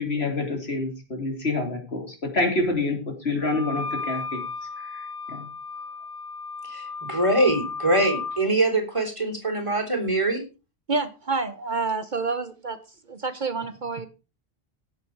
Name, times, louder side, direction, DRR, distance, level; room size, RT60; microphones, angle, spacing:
voice 1, 0.0-4.4 4.9-5.5, left 2 dB, 85° left, 3.3 m, -27 dB
Wind instrument woodwind instrument, 3.4-8.4, left 4 dB, 20° left, 4.2 m, -34 dB
voice 2, 6.6-10.4, right 1 dB, 30° right, 3.7 m, -23 dB
voice 3, 10.9-12.8 13.1-14.1, right 3 dB, 50° right, 1.2 m, -28 dB
16.5 x 7.2 x 4.7 m
omnidirectional pair, 1.0 m